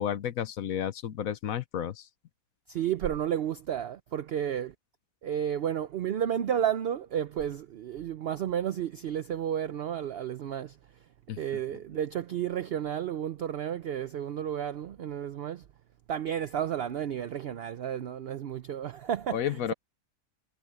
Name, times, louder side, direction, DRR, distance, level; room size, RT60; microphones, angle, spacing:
voice 1, 0.0-2.0 11.3-11.4 19.3-19.7, left 9 dB, 70° left, 1.2 m, -31 dB
voice 2, 2.7-4.7 5.2-10.8 11.4-15.7 16.1-19.7, right 9 dB, 60° right, 0.6 m, -32 dB
omnidirectional pair, 1.6 m